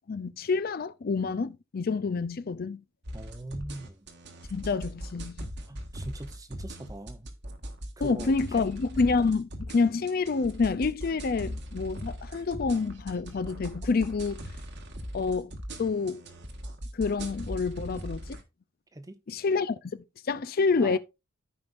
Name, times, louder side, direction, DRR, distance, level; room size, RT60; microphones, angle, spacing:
voice 1, 0.1-2.8 4.5-5.5 8.0-14.4 15.1-15.5 15.8-16.2 16.9-18.4 19.3-21.0, left 4 dB, 45° left, 0.4 m, -28 dB
sound 1, 3.0-18.4, equal, 60° right, 1.5 m, -40 dB
voice 2, 3.1-4.1 5.7-7.3 8.0-8.7 18.9-19.2 20.8-21.0, right 1 dB, 15° right, 0.7 m, -41 dB
14.0 x 5.2 x 2.5 m
head